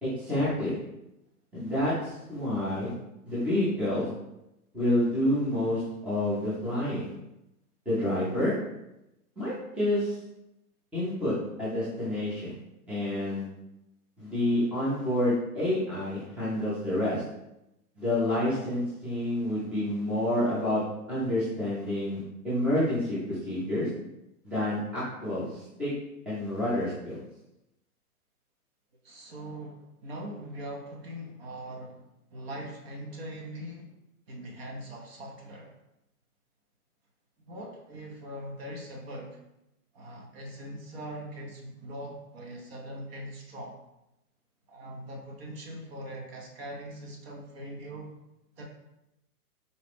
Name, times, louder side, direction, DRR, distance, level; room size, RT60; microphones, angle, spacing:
voice 1, 0.0-0.8 1.5-2.9 3.3-4.1 4.7-7.1 7.9-8.5 9.4-10.2 10.9-12.6 12.9-13.4 14.2-17.2 18.0-20.8 21.1-23.9 24.4-25.9 26.3-27.2, left 1 dB, ahead, -10 dB, 0.6 m, -28 dB
voice 2, 29.0-32.1 32.3-33.9 34.3-35.7 37.5-39.4 39.9-43.8 44.7-48.2 48.6-48.7, right 1 dB, 40° right, -1 dB, 0.8 m, -41 dB
4.0 x 2.3 x 3.4 m, 0.89 s
hypercardioid pair, 140°, 46 cm